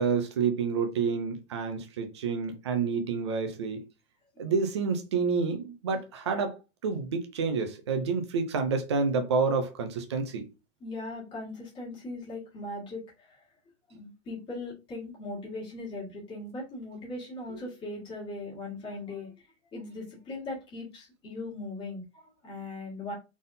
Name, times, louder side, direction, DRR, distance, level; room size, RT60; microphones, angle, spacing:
voice 1, 0.0-3.8 4.4-6.5 6.8-10.4, right 5 dB, 25° right, 0.4 m, -28 dB
voice 2, 10.8-13.4 13.9-19.5 19.7-23.1, left 2 dB, 15° left, 1.7 m, -39 dB
4.0 x 3.5 x 2.6 m
hypercardioid pair, 165°, 38 cm